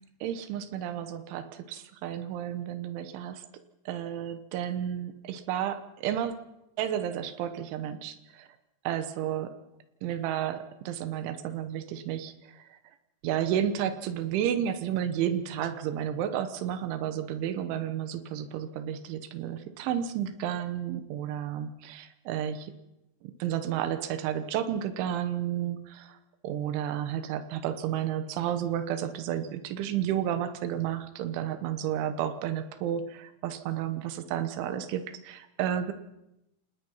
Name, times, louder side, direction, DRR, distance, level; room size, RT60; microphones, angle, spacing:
voice 1, 0.2-3.4 3.9-6.3 6.8-8.5 8.9-9.5 10.0-12.3 13.2-22.7 23.2-26.2 26.4-35.9, right 10 dB, 85° right, 10 dB, 3.5 m, -32 dB
28.5 x 19.0 x 5.6 m, 0.91 s
omnidirectional pair, 5.3 m